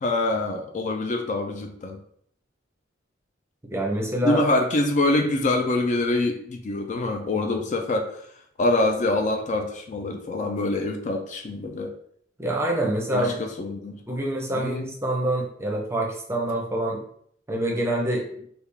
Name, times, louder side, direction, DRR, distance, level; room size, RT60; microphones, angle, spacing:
voice 1, 0.0-2.0 4.2-8.2 8.6-11.9 13.1-14.0 14.5-14.8, left 2 dB, 40° left, 4 dB, 0.4 m, -25 dB
voice 2, 3.7-4.4 12.4-13.3 14.1-17.0 17.5-18.3, right 1 dB, 15° right, 0 dB, 0.6 m, -26 dB
3.5 x 2.3 x 3.3 m, 0.65 s
head